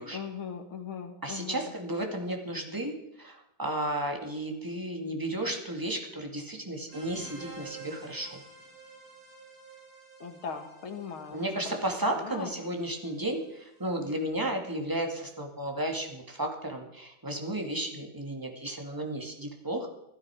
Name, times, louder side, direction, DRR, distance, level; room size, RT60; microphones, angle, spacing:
voice 1, 0.1-1.7 10.2-11.4 11.7-11.8 12.2-12.5, left 6 dB, 85° left, 5 dB, 2.6 m, -39 dB
voice 2, 1.2-2.9 3.2-8.4 11.3-19.9, right 1 dB, 10° right, 2 dB, 2.0 m, -33 dB
sound 1, 6.9-14.2, right 4 dB, 75° right, 7.6 m, -51 dB
16.0 x 12.5 x 4.8 m, 0.85 s
omnidirectional pair, 2.3 m